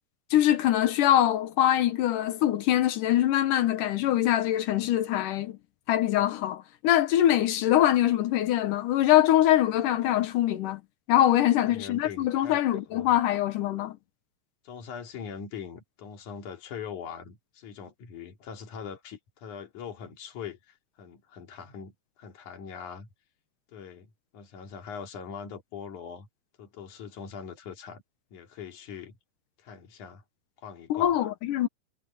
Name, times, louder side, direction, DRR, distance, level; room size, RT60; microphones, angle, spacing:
voice 1, 0.3-5.6 5.9-10.8 11.1-14.0 30.9-31.7, left 12 dB, 70° left, 2.3 m, -23 dB
voice 2, 11.6-12.6 12.9-13.1 14.6-23.1 23.7-26.3 26.6-28.0 28.3-29.2 29.6-30.2 30.6-31.3, left 7 dB, 55° left, 4.1 m, -42 dB
omnidirectional pair, 4.3 m